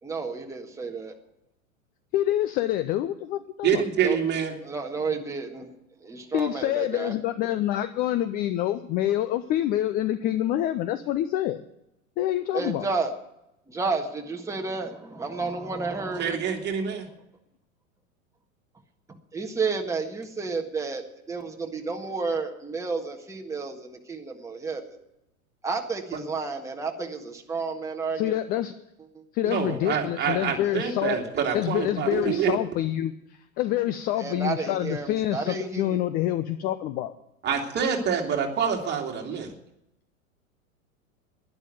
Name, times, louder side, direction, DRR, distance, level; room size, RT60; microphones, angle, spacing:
voice 1, 0.0-1.1 4.0-4.2 4.6-5.7 6.0-7.1 12.5-13.1 13.7-16.4 19.3-25.0 25.6-28.3 29.1-29.2 29.7-29.8 34.1-36.0, right 4 dB, 5° right, 2 dB, 1.6 m, -31 dB
voice 2, 2.1-3.8 6.3-11.6 12.2-12.9 28.2-28.7 29.3-31.2 31.5-37.1, left 13 dB, 20° left, 12 dB, 0.5 m, -27 dB
voice 3, 3.6-4.5 16.2-17.1 29.5-32.6 37.4-39.5, right 7 dB, 25° right, 2 dB, 2.6 m, -26 dB
11.5 x 11.0 x 9.1 m, 0.84 s
figure-of-eight pair, 95°, 41 cm